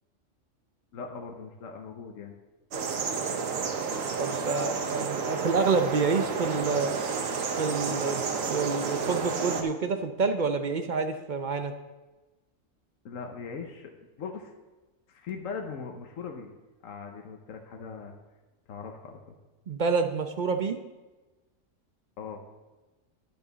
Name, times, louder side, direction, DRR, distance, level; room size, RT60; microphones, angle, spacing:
voice 1, 0.9-2.3 13.0-13.9 14.2-14.5 15.1-16.5 16.8-18.1 18.7-19.4 22.2-22.4, left 5 dB, 80° left, 3 dB, 1.3 m, -40 dB
sound 1, 2.7-9.6, right 5 dB, 80° right, 1.3 m, -31 dB
voice 2, 4.2-6.9 7.6-11.7 19.7-20.8, right 4 dB, 45° right, 7 dB, 0.7 m, -28 dB
10.0 x 9.2 x 4.0 m, 1.2 s
omnidirectional pair, 1.4 m